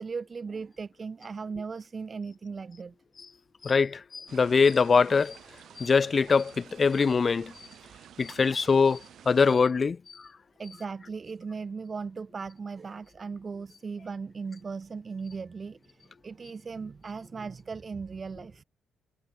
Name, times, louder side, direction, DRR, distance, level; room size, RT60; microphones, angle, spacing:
voice 1, 0.0-2.9 10.6-18.6, right 5 dB, 35° right, 3.9 m, -38 dB
voice 2, 3.6-5.4 5.8-7.5 8.2-9.0 9.3-10.2, left 5 dB, 35° left, 0.4 m, -23 dB
sound 1, 4.3-9.6, right 10 dB, 65° right, 5.1 m, -51 dB
cardioid pair, 90°, 0 cm